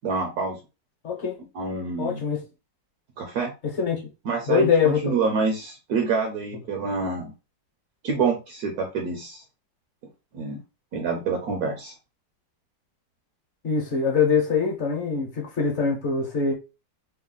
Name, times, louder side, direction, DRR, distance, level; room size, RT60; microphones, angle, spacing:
voice 1, 0.0-0.6 1.5-2.2 3.2-3.5 4.3-7.3 8.0-9.4 10.3-10.6 10.9-11.9, right 4 dB, 70° right, 1.0 m, -27 dB
voice 2, 1.0-1.4 2.0-2.4 3.8-4.1 4.5-5.1 13.6-16.5, left 5 dB, 45° left, 1.1 m, -23 dB
3.1 x 2.2 x 3.8 m
omnidirectional pair, 2.0 m